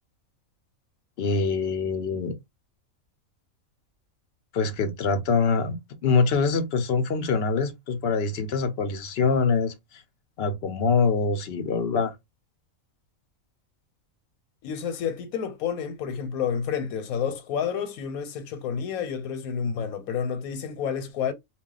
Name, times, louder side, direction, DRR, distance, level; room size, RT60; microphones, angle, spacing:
voice 1, 1.2-2.3 4.5-5.8 6.0-9.7 10.4-12.1, left 4 dB, 60° left, 0.7 m, -24 dB
voice 2, 14.6-21.3, left 7 dB, 85° left, 1.1 m, -30 dB
2.3 x 2.2 x 3.7 m
omnidirectional pair, 1.5 m